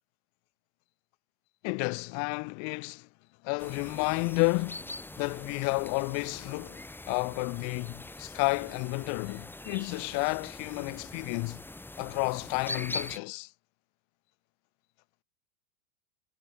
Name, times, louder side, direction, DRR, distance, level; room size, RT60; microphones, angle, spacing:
voice 1, 1.6-3.1 3.4-6.8 7.1-11.6 12.0-13.5, left 35 dB, 40° left, 1.4 m, -31 dB
sound 1, 3.6-13.2, left 2 dB, 5° left, 4.2 m, -43 dB
supercardioid pair, 140°, 44 cm